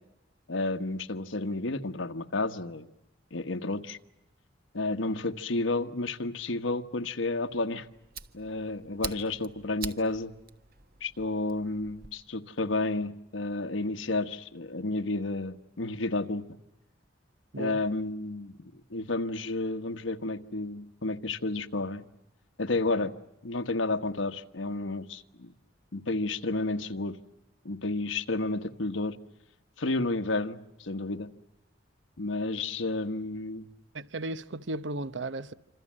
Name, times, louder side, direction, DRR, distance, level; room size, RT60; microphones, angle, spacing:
voice 1, 0.5-2.9 3.3-4.0 4.7-7.9 8.3-10.3 11.0-16.4 17.6-22.0 22.6-23.1 23.4-25.5 25.9-27.2 27.6-29.2 29.8-31.3 32.2-33.7, left 2 dB, 80° left, 1.4 m, -31 dB
Fire, 7.5-12.1, right 6 dB, 50° right, 1.4 m, -44 dB
voice 2, 33.9-35.5, right 2 dB, 65° right, 0.9 m, -35 dB
27.0 x 26.5 x 7.5 m
head